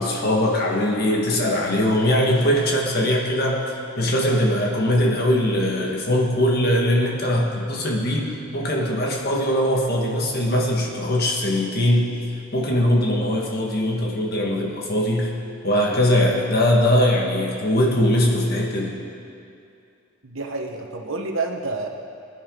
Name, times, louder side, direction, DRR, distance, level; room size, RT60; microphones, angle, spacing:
voice 1, 0.0-3.6 4.0-12.2 12.5-15.3 15.6-18.9, left 1 dB, 45° left, -1 dB, 1.7 m, -21 dB
voice 2, 20.2-21.9, right 3 dB, 65° right, 2 dB, 1.3 m, -28 dB
21.5 x 10.0 x 3.9 m, 2.6 s
head